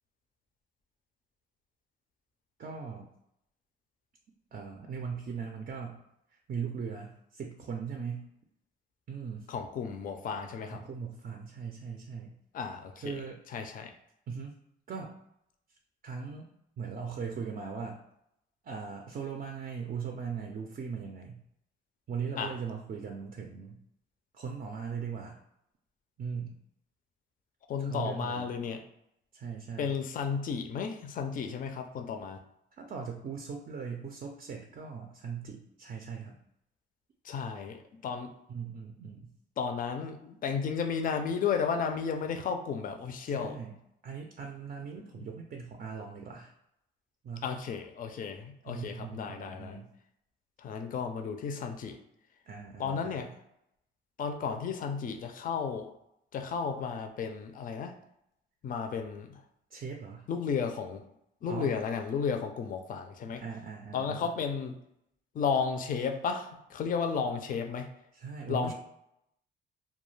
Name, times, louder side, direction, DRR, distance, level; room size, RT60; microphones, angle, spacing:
voice 1, 2.6-3.1 4.5-6.0 6.5-8.3 9.1-9.5 10.7-12.4 13.0-13.4 14.3-14.5 14.9-15.1 16.0-16.5 16.8-18.0 18.6-21.4 22.1-23.8 24.3-25.4 26.2-26.6 27.8-28.6 29.3-30.0 32.8-36.4 38.5-39.3 43.3-43.7 44.0-46.5 47.2-47.5 48.7-49.9 52.5-53.3 59.7-60.3 61.5-61.8 63.4-64.3 68.1-68.7, right 6 dB, 45° right, 2 dB, 0.4 m, -39 dB
voice 2, 9.5-10.8 12.5-13.1 13.5-13.9 22.4-22.5 27.7-28.8 29.8-32.4 37.2-37.8 38.0-38.3 39.6-43.6 45.1-45.3 47.4-49.8 50.6-52.0 52.8-53.3 54.2-55.9 56.3-57.9 58.6-59.4 60.3-61.0 61.4-63.4 63.9-64.8 65.3-67.9 68.5-68.7, left 6 dB, 45° left, 5 dB, 0.4 m, -33 dB
2.2 x 2.2 x 3.1 m, 0.78 s
cardioid pair, 90°, 20 cm